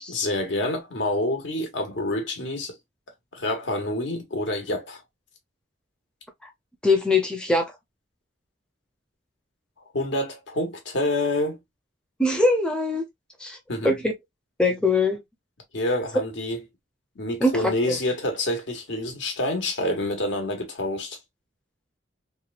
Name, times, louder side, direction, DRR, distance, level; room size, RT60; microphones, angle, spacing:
voice 1, 0.1-2.8 3.3-5.0 9.9-11.6 13.7-14.0 15.7-16.6 17.2-21.2, left 1 dB, 80° left, 1.0 m, -27 dB
voice 2, 6.8-7.7 12.2-13.0 13.4-13.6 13.8-14.1 14.6-15.2 17.4-18.0, left 2 dB, 5° left, 0.4 m, -22 dB
2.9 x 2.2 x 2.4 m
head